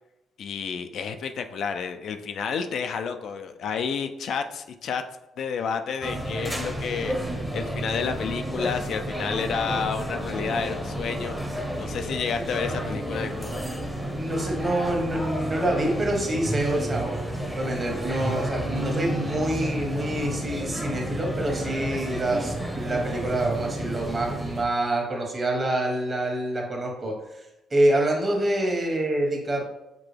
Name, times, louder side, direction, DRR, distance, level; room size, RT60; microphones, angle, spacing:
voice 1, 0.4-5.0 5.4-11.3 11.7-13.7, left 6 dB, 65° left, 7 dB, 0.3 m, -30 dB
sound 1, 6.0-24.6, right 1 dB, 5° right, 0.8 m, -31 dB
voice 2, 14.1-27.4 27.7-29.6, right 1 dB, 35° right, 0 dB, 1.3 m, -26 dB
5.9 x 2.2 x 3.3 m, 0.92 s
cardioid pair, 90°, 0 cm